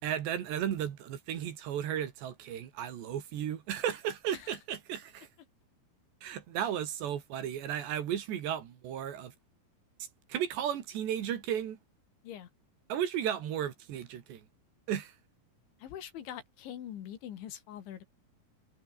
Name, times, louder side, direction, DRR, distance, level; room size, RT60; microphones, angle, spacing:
voice 1, 0.0-5.3 6.2-9.3 10.3-11.8 12.9-14.4 14.9-15.2, right 10 dB, 65° right, 4.1 m, -34 dB
voice 2, 15.8-18.0, left 10 dB, 70° left, 4.5 m, -44 dB
omnidirectional pair, 5.7 m